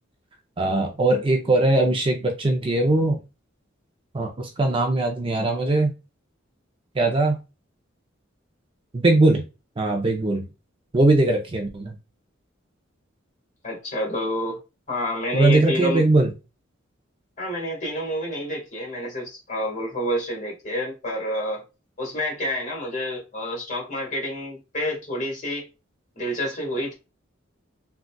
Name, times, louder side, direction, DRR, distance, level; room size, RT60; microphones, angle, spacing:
voice 1, 0.6-3.2 4.1-5.9 6.9-7.4 8.9-9.4 9.8-10.4 10.9-11.9 15.3-16.3, right 2 dB, 25° right, 0.5 m, -20 dB
voice 2, 13.6-14.6 14.9-16.0 17.4-21.6 22.0-25.7 26.1-26.9, equal, 40° left, 1.6 m, -28 dB
3.8 x 2.3 x 2.3 m
head